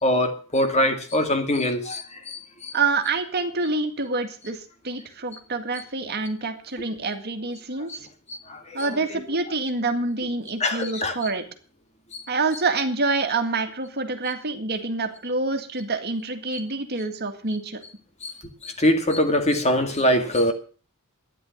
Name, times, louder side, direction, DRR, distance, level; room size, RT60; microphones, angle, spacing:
voice 1, 0.0-2.7 7.9-8.0 8.3-8.9 10.6-11.2 12.1-12.2 18.2-18.3 18.6-20.5, left 1 dB, 30° left, 2.1 m, -23 dB
voice 2, 2.7-8.1 8.7-11.4 12.3-17.8, right 3 dB, 50° right, 2.0 m, -27 dB
12.5 x 10.5 x 7.2 m
head